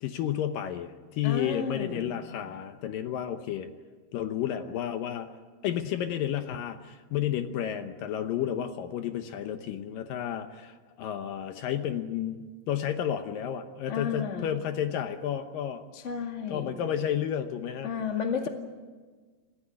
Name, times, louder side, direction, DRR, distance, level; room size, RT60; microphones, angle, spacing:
voice 1, 0.0-3.7 4.1-5.3 5.6-15.8 16.5-17.9, left 10 dB, 70° left, 8 dB, 2.4 m, -31 dB
voice 2, 1.2-2.1 13.9-14.5 15.9-16.7 17.8-18.5, left 6 dB, 30° left, 4 dB, 1.3 m, -32 dB
27.5 x 14.5 x 9.9 m, 1.4 s
omnidirectional pair, 4.5 m